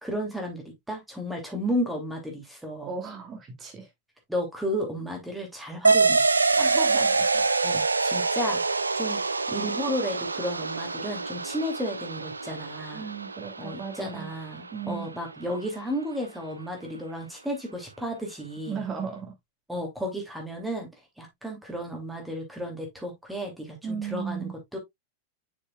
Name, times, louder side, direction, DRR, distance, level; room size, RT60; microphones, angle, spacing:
voice 1, 0.0-2.9 4.3-6.3 7.6-8.6 8.9-9.2 9.5-13.1 13.6-18.8 19.7-20.9 21.2-24.8, equal, 5° right, 2.9 m, -33 dB
voice 2, 2.9-3.9 6.6-7.5 12.9-14.3 14.7-15.1 18.7-19.3 23.8-24.5, right 6 dB, 25° right, 2.9 m, -35 dB
sound 1, 5.8-14.9, right 4 dB, 80° right, 0.4 m, -26 dB
7.2 x 6.4 x 2.4 m
figure-of-eight pair, 90°, 0 cm